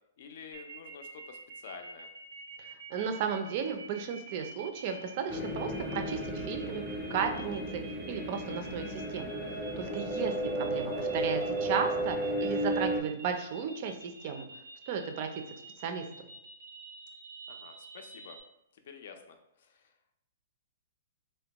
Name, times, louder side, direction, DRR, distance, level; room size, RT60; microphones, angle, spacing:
voice 1, 0.2-2.1 9.9-10.2 17.5-18.4 18.7-19.8, left 6 dB, 60° left, 6 dB, 0.4 m, -49 dB
sound 1, 0.5-18.4, right 4 dB, 90° right, 0.6 m, -48 dB
voice 2, 2.6-6.8 7.1-7.8 8.1-9.4 9.8-14.5 14.9-15.4 15.8-16.3, right 6 dB, 45° right, 6 dB, 0.4 m, -35 dB
sound 2, 5.3-13.0, right 1 dB, 10° left, 0.6 m, -33 dB
3.4 x 2.2 x 2.9 m, 0.84 s
hypercardioid pair, 150°, 0 cm